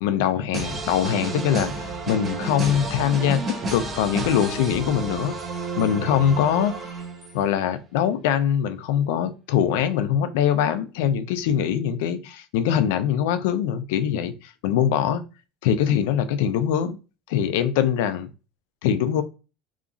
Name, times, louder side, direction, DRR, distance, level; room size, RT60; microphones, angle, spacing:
voice 1, 0.0-3.4 3.7-5.4 5.8-6.7 7.3-15.2 15.6-17.0 17.3-18.3 18.8-19.2, left 9 dB, 80° left, 0.5 m, -23 dB
sound 1, 0.5-7.5, right 3 dB, 25° right, 0.6 m, -31 dB
2.9 x 2.4 x 2.4 m
cardioid pair, 140°, 0 cm